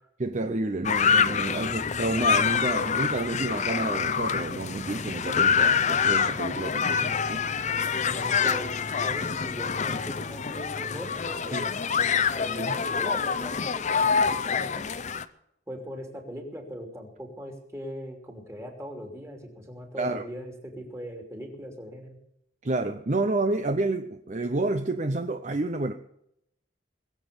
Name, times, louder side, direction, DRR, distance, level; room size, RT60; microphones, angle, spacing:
voice 1, 0.2-7.4 8.0-8.2 11.5-11.6 12.6-12.8 20.0-20.2 22.6-25.9, right 2 dB, 40° right, 0.7 m, -29 dB
sound 1, 0.8-15.2, left 6 dB, 40° left, 0.6 m, -26 dB
voice 2, 8.1-11.8 12.3-14.9 15.7-22.2, equal, 15° right, 3.0 m, -40 dB
21.0 x 8.1 x 7.0 m
head